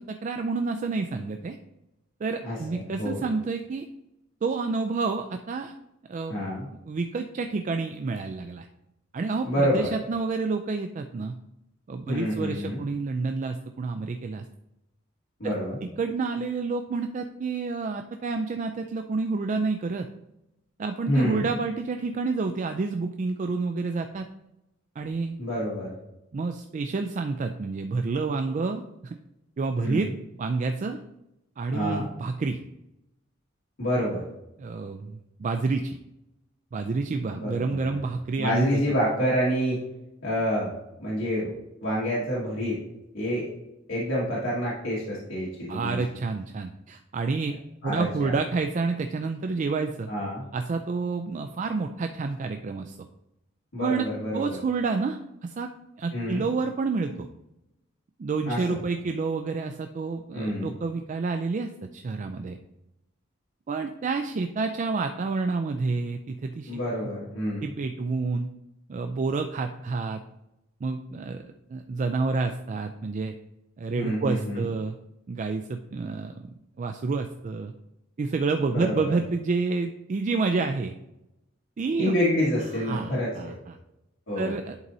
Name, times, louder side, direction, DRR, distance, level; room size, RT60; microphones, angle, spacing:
voice 1, 0.0-1.6 2.2-3.9 4.4-5.7 6.1-6.5 6.9-8.7 9.1-11.4 11.9-14.4 15.4-15.5 15.8-20.1 20.8-24.3 25.0-25.4 26.3-29.2 29.6-30.1 30.4-31.0 31.6-32.6 34.6-36.0 36.7-38.7 45.7-47.5 47.8-50.1 50.5-53.1 53.8-55.7 56.0-57.3 58.2-62.6 63.7-66.7 67.6-68.5 68.9-70.2 70.8-71.4 71.7-73.4 73.8-75.0 75.3-76.3 76.8-77.7 78.2-80.9 81.8-82.1 82.8-83.8 84.4-84.8, right 4 dB, 40° right, 6 dB, 0.3 m, -29 dB
voice 2, 2.4-3.2 6.3-6.7 9.4-9.9 12.1-12.8 15.4-15.8 21.1-21.5 25.4-25.9 29.8-30.1 31.7-32.1 33.8-34.2 37.3-38.0 38.4-39.8 40.2-40.7 41.0-41.5 41.8-42.8 43.1-43.5 43.9-46.0 47.8-48.3 50.1-50.4 53.7-54.6 56.1-56.5 58.5-58.8 60.3-60.7 66.7-67.7 74.0-74.7 78.7-79.2 82.0-83.5 84.3-84.5, equal, 80° left, -8 dB, 1.8 m, -28 dB
11.0 x 4.0 x 2.7 m, 0.88 s
head